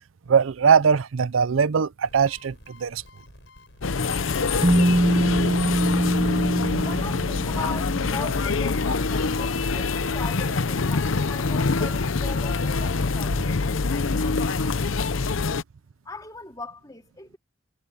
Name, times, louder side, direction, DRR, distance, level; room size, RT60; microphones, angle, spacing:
voice 1, 0.3-3.0, right 6 dB, 90° right, 0.5 m, -21 dB
sound 1, 2.0-9.2, left 2 dB, 65° left, 6.3 m, -51 dB
sound 2, 3.8-15.6, left 4 dB, 90° left, 0.8 m, -25 dB
sound 3, 4.6-8.5, right 1 dB, 25° right, 0.7 m, -23 dB
voice 2, 6.8-15.6 16.0-17.4, left 3 dB, 20° left, 2.6 m, -40 dB
head